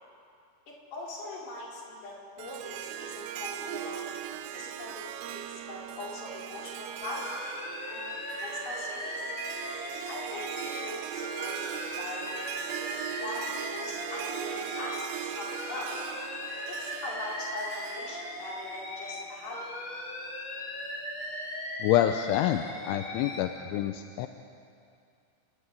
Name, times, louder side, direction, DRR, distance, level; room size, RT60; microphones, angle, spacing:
voice 1, 0.7-4.0 4.5-7.3 7.9-9.3 10.1-10.5 10.8-15.9 16.7-19.7, left 2 dB, 60° left, -4 dB, 6.5 m, -42 dB
Harp, 2.4-19.6, right 11 dB, 75° right, 2.5 m, -39 dB
Alarm, 7.0-10.9 11.2-15.1 15.4-19.2 19.5-23.4, left 1 dB, 30° left, 3.1 m, -38 dB
voice 2, 21.8-24.3, left 12 dB, 85° left, 6 dB, 3.1 m, -27 dB
29.0 x 13.5 x 9.3 m, 2.4 s
omnidirectional pair, 5.4 m